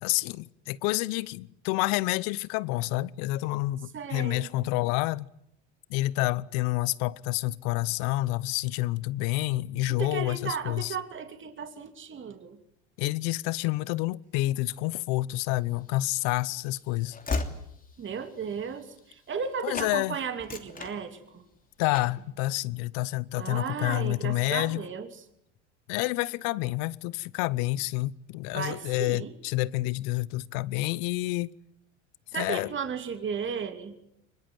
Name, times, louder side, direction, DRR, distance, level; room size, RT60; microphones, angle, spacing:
voice 1, 0.0-5.3 5.9-11.0 13.0-17.2 19.6-20.2 21.8-24.8 25.9-31.5 32.3-32.7, left 18 dB, 65° left, 0.9 m, -28 dB
voice 2, 3.9-4.5 9.9-12.6 18.0-21.4 23.3-25.1 28.5-29.3 32.3-33.9, right 6 dB, 35° right, 3.0 m, -35 dB
Train / Slam, 15.8-19.5 19.7-20.0 20.3-21.5 21.9-22.3, left 3 dB, 25° left, 3.0 m, -37 dB
23.5 x 21.5 x 9.5 m
hypercardioid pair, 90°, 36 cm